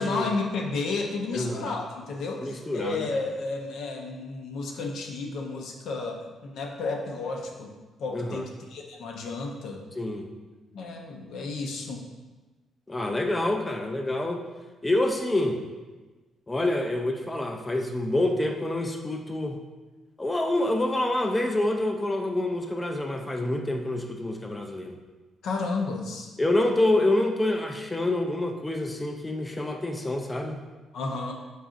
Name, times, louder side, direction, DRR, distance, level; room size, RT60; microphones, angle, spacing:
voice 1, 0.0-7.7 8.0-9.8 10.7-12.0 25.4-26.3 30.9-31.3, left 3 dB, 75° left, 1 dB, 0.5 m, -32 dB
voice 2, 1.3-1.8 2.4-3.1 8.1-8.5 10.0-10.3 12.9-14.4 14.8-15.6 16.5-19.6 20.2-25.0 26.4-30.6, left 1 dB, 15° left, 3 dB, 0.3 m, -27 dB
3.9 x 2.4 x 3.7 m, 1.2 s
cardioid pair, 90°, 0 cm